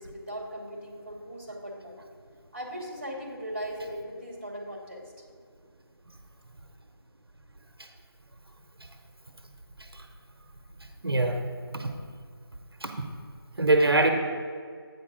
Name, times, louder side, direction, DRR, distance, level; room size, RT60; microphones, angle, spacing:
voice 1, 0.0-2.0 2.5-5.1, equal, 30° right, -1 dB, 1.0 m, -38 dB
voice 2, 11.0-11.4 11.7-11.9 12.8-13.0 13.6-14.1, right 2 dB, 70° right, 4 dB, 0.8 m, -23 dB
8.3 x 4.5 x 4.9 m, 2.1 s
figure-of-eight pair, 175°, 13 cm